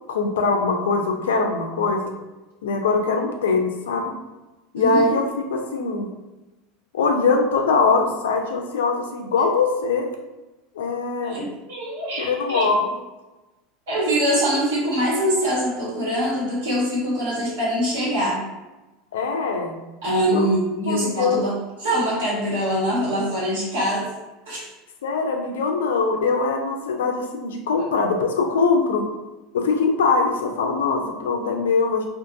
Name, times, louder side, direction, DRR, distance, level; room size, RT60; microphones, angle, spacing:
voice 1, 0.1-2.1 2.6-4.1 4.7-5.2 5.5-6.1 6.9-10.1 10.8-11.4 12.2-12.8 19.1-19.7 20.3-20.5 20.9-21.4 25.0-29.1 29.5-32.0, left 4 dB, 80° left, 3 dB, 0.4 m, -22 dB
voice 2, 4.7-5.2 11.2-12.7 13.9-18.4 20.0-21.5 21.8-24.1 24.5-24.7, equal, 75° right, -6 dB, 1.3 m, -23 dB
2.5 x 2.5 x 2.5 m, 1.1 s
hypercardioid pair, 85°, 0 cm